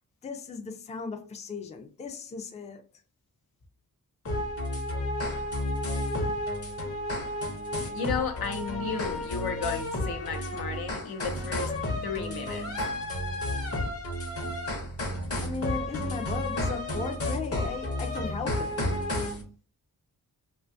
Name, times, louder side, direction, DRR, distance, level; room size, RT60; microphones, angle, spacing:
voice 1, 0.2-2.8 15.4-18.9, left 4 dB, 20° left, 0.3 m, -36 dB
sound 1, 4.3-19.4, left 1 dB, 40° left, 0.7 m, -31 dB
voice 2, 7.9-11.7 12.0-12.7, left 5 dB, 90° left, 0.6 m, -33 dB
2.5 x 2.3 x 2.5 m
wide cardioid pair, 90°, 36 cm